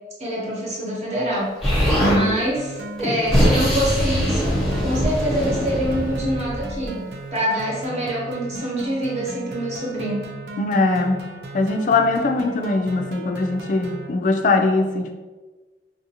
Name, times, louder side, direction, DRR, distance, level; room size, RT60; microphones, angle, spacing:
voice 1, 0.2-1.5 2.1-7.0 7.3-10.3, equal, 40° right, -5 dB, 0.9 m, -25 dB
Explosion, 1.6-2.2 3.0-6.8, equal, ahead, 0.9 m, -22 dB
sound 1, 2.6-14.1, right 2 dB, 65° right, 0.4 m, -36 dB
voice 2, 10.6-11.3 11.5-15.1, left 3 dB, 45° left, 4 dB, 0.3 m, -21 dB
3.4 x 2.5 x 2.8 m, 1.3 s
head